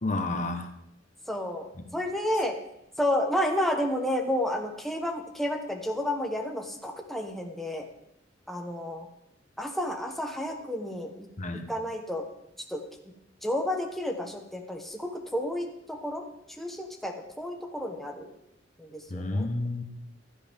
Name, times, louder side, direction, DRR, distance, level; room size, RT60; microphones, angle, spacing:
voice 1, 0.0-0.7 1.7-1.9 2.3-2.4 11.4-11.6 19.1-19.8, left 2 dB, 40° left, 6 dB, 1.1 m, -30 dB
voice 2, 1.3-1.7 1.9-2.6 3.0-7.9 8.5-9.1 9.6-11.1 11.7-12.2 12.7-12.8 13.4-16.2 16.6-18.3 18.8-19.5, left 1 dB, ahead, 2 dB, 1.0 m, -31 dB
15.5 x 12.0 x 3.6 m, 0.79 s
head